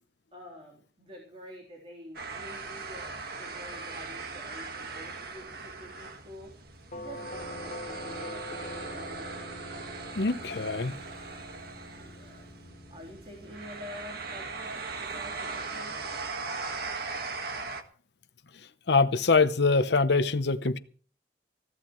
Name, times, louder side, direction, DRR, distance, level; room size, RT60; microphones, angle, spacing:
voice 1, 0.3-6.5 6.9-9.4 11.9-16.1, equal, 35° right, 3.7 m, -48 dB
sound 1, 2.1-17.8, right 4 dB, 60° right, 1.7 m, -39 dB
Doorbell, 6.9-15.8, left 1 dB, 45° left, 1.3 m, -45 dB
voice 2, 10.2-10.9 18.9-20.8, left 4 dB, 70° left, 0.8 m, -24 dB
21.0 x 16.0 x 3.2 m
head